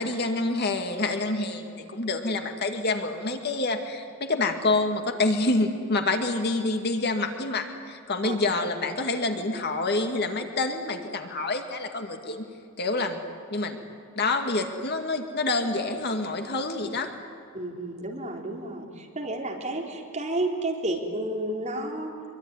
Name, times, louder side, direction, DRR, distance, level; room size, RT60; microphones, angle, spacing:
voice 1, 0.0-12.5 12.8-13.2 13.5-13.8 14.2-17.1, left 2 dB, 50° left, 5 dB, 2.3 m, -27 dB
voice 2, 17.5-22.1, right 1 dB, 35° right, 0 dB, 4.2 m, -31 dB
25.0 x 23.5 x 9.9 m, 2.4 s
head